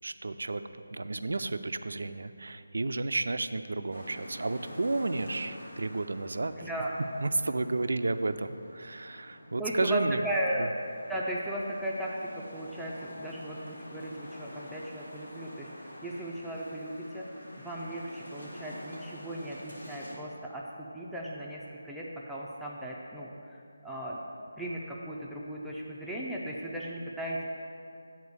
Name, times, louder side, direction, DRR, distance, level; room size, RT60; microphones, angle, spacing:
voice 1, 0.0-0.6 0.9-6.7 7.2-10.2, right 2 dB, 70° right, 11 dB, 0.4 m, -32 dB
sound 1, 3.9-20.1, equal, 80° left, 1.9 m, -47 dB
voice 2, 6.6-6.9 9.6-15.7 16.0-17.3 17.6-20.6 20.9-24.2 24.6-27.4, right 1 dB, ahead, -7 dB, 0.5 m, -36 dB
8.1 x 4.3 x 6.8 m, 2.5 s
figure-of-eight pair, 160°, 0 cm